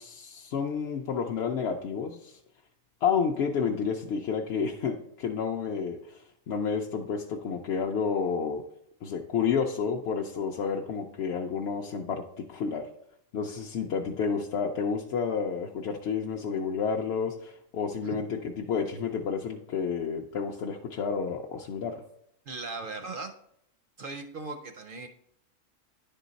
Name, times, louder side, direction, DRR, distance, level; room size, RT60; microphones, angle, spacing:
voice 1, 0.0-2.4 3.0-8.6 9.0-12.2 12.5-12.8 13.3-22.0, left 6 dB, 65° left, 1 dB, 0.8 m, -30 dB
voice 2, 22.5-23.3 24.0-25.1, right 3 dB, 60° right, 6 dB, 0.6 m, -38 dB
10.0 x 3.8 x 4.0 m, 0.74 s
omnidirectional pair, 1.3 m